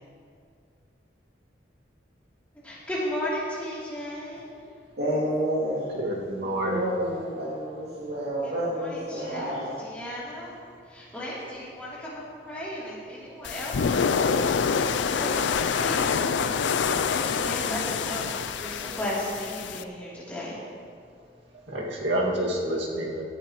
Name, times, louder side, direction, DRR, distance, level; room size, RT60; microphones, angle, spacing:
voice 1, 2.6-4.5 8.4-10.5 10.8-20.6, equal, 5° left, -9 dB, 3.1 m, -35 dB
voice 2, 5.0-6.0 6.6-9.7, equal, 65° right, -10 dB, 2.6 m, -29 dB
voice 3, 5.9-6.9 21.7-23.2, right 1 dB, 80° right, -3 dB, 2.1 m, -28 dB
sound 1, 13.4-19.8, left 6 dB, 80° left, 0.4 m, -26 dB
17.0 x 10.5 x 3.1 m, 2.3 s
head